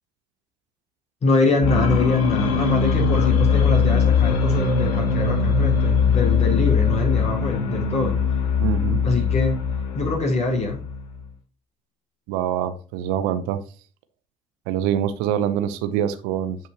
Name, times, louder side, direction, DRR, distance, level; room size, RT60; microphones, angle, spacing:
voice 1, 1.2-8.4 9.0-9.6 9.9-10.8, left 3 dB, 40° left, 4.4 m, -23 dB
sound 1, 1.6-11.2, left 5 dB, 75° left, 1.3 m, -21 dB
voice 2, 8.6-9.0 12.3-13.6 14.7-16.6, right 10 dB, 70° right, 0.7 m, -24 dB
9.5 x 5.5 x 2.9 m
hypercardioid pair, 50°, 17 cm